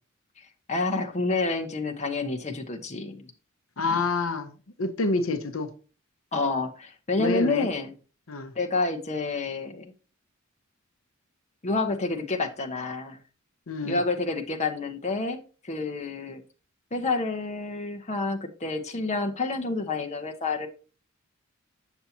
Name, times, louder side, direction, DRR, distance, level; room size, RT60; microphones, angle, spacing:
voice 1, 0.4-3.3 3.8-4.0 6.3-7.9 8.5-9.9 11.6-13.2 13.8-16.4 16.9-20.7, left 3 dB, 35° left, 0.8 m, -29 dB
voice 2, 3.8-4.5 4.8-5.7 7.2-7.7 8.3-8.5 13.7-14.0, left 3 dB, 70° left, 0.8 m, -27 dB
7.4 x 7.0 x 2.8 m
head